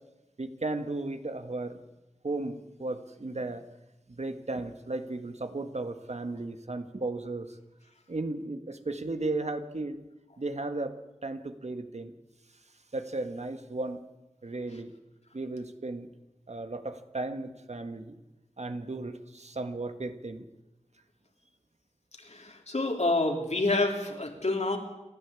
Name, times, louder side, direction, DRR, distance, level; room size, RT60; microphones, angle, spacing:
voice 1, 0.4-1.8 2.2-3.6 4.1-7.6 8.1-10.0 10.4-12.1 12.9-14.0 14.4-14.9 15.3-16.1 16.5-18.2 18.6-20.5, right 2 dB, 65° right, 8 dB, 1.7 m, -35 dB
voice 2, 22.3-24.8, left 2 dB, 65° left, 3 dB, 3.5 m, -28 dB
28.0 x 12.0 x 8.5 m, 1.0 s
wide cardioid pair, 45°, 12 cm